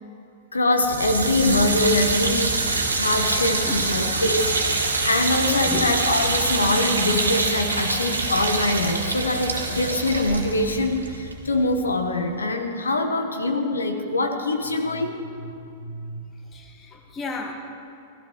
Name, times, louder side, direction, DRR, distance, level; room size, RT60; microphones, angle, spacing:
voice 1, 0.5-2.6 2.9-15.5 15.8-16.2, left 2 dB, 80° left, 5 dB, 1.2 m, -24 dB
sound 1, 0.8-11.9, right 3 dB, 85° right, 2.1 m, -25 dB
voice 2, 5.6-5.9 16.5-17.5, left 4 dB, 25° left, 3 dB, 1.9 m, -33 dB
18.5 x 15.5 x 3.2 m, 2.6 s
figure-of-eight pair, 95°, 0 cm